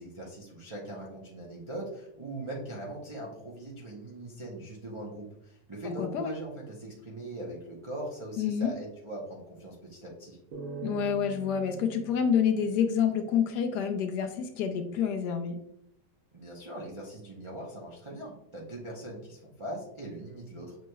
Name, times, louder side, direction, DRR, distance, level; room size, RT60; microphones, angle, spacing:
voice 1, 0.0-10.4 16.3-20.8, right 1 dB, 40° right, -5 dB, 0.4 m, -41 dB
voice 2, 5.8-6.3 8.4-8.7 10.8-15.6, left 7 dB, 75° left, 6 dB, 1.1 m, -28 dB
sound 1, 10.5-13.9, right 5 dB, 60° right, 1.3 m, -44 dB
7.1 x 3.1 x 2.2 m, 0.79 s
omnidirectional pair, 1.9 m